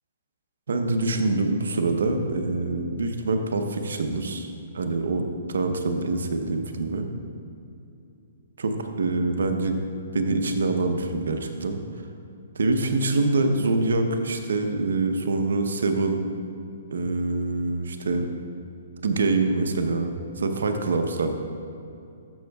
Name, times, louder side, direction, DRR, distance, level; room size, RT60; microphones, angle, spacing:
voice 1, 0.7-7.1 8.6-9.8 10.1-11.8 12.6-16.3 16.9-18.3 19.0-21.4, right 3 dB, 85° right, 6 dB, 0.8 m, -25 dB
13.5 x 6.2 x 2.3 m, 2.7 s
hypercardioid pair, 140°, 0 cm